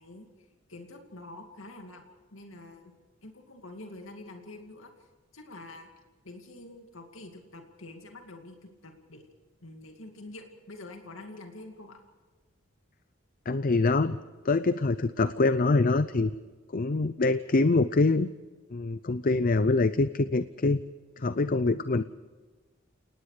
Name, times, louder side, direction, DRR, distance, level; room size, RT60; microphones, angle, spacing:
voice 1, 0.0-2.0 2.3-2.9 3.2-4.9 5.3-5.9 6.2-9.3 9.6-12.0, left 2 dB, 85° left, 4 dB, 2.4 m, -46 dB
voice 2, 13.5-14.2 14.4-16.3 16.7-18.3 18.7-20.8 21.2-22.0, left 3 dB, 45° left, 13 dB, 0.6 m, -24 dB
29.5 x 19.0 x 5.0 m, 1.4 s
head